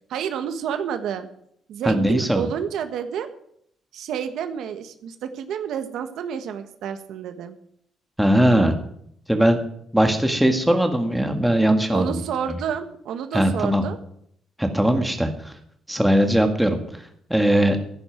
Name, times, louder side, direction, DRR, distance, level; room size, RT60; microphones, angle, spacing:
voice 1, 0.1-1.3 1.7-3.3 3.9-7.5 11.9-14.0, right 8 dB, 70° right, 8 dB, 1.6 m, -29 dB
voice 2, 1.8-2.5 8.2-8.7 9.3-9.6 9.9-12.2 12.5-12.6 13.3-13.8 14.6-15.5 15.9-16.8 17.3-17.8, right 1 dB, 5° right, 5 dB, 1.7 m, -19 dB
16.0 x 15.5 x 4.6 m, 0.69 s
cardioid pair, 170°, 0 cm